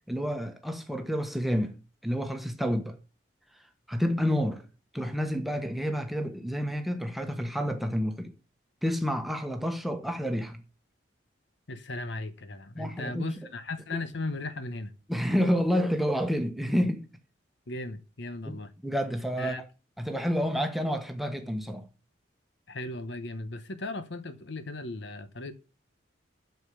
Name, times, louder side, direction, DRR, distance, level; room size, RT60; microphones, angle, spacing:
voice 1, 0.1-1.7 2.0-3.0 3.9-4.7 4.9-8.3 8.8-10.6 12.7-13.4 13.9-14.0 15.1-17.1 18.5-19.6 20.0-21.9, equal, ahead, 1.2 m, -29 dB
voice 2, 11.7-14.9 17.7-18.7 19.4-19.6 22.7-25.5, left 2 dB, 65° left, 1.0 m, -36 dB
8.1 x 6.7 x 6.8 m
head